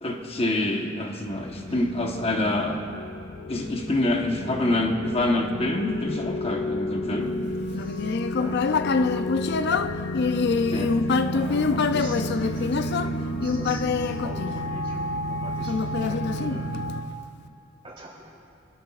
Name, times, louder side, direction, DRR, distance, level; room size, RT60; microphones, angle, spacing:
voice 1, 0.0-2.9 3.5-7.3 10.7-10.9 11.7-12.2, left 1 dB, 30° left, 2 dB, 1.1 m, -26 dB
sound 1, 1.3-17.0, equal, 85° left, 0.8 m, -32 dB
Human voice, 7.7-15.1 15.7-17.1, left 4 dB, 60° left, 0.4 m, -25 dB
voice 2, 7.7-8.7 10.6-10.7 11.3-16.7 17.8-18.3, right 1 dB, 30° right, -5 dB, 3.4 m, -43 dB
24.5 x 12.5 x 2.4 m, 2.5 s
head